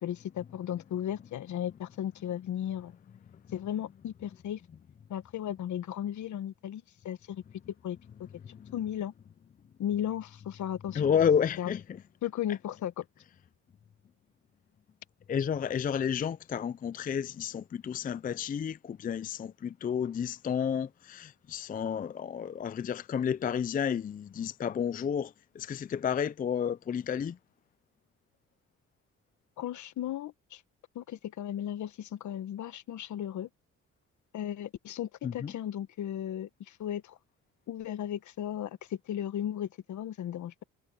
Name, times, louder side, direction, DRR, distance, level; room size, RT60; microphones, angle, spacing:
voice 1, 0.0-3.0 3.5-4.6 5.1-7.4 7.8-8.0 8.7-9.1 9.8-11.1 11.6-11.7 12.2-13.0 29.6-30.6 30.9-33.5 34.3-37.2 37.7-40.6, left 10 dB, 70° left, 1.4 m, -35 dB
voice 2, 10.9-11.8 15.3-27.4 35.2-35.5, left 8 dB, 30° left, 0.4 m, -31 dB
cardioid pair, 90°, 30 cm